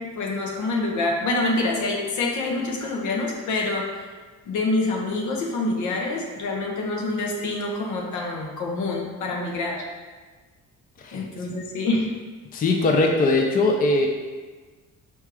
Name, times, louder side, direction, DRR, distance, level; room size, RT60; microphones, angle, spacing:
voice 1, 0.0-3.9 4.5-9.8 11.1-12.1, left 2 dB, 80° left, -1 dB, 1.0 m, -26 dB
voice 2, 12.5-14.1, left 2 dB, 30° left, 2 dB, 0.5 m, -20 dB
4.5 x 2.4 x 4.7 m, 1.3 s
cardioid pair, 115°, 29 cm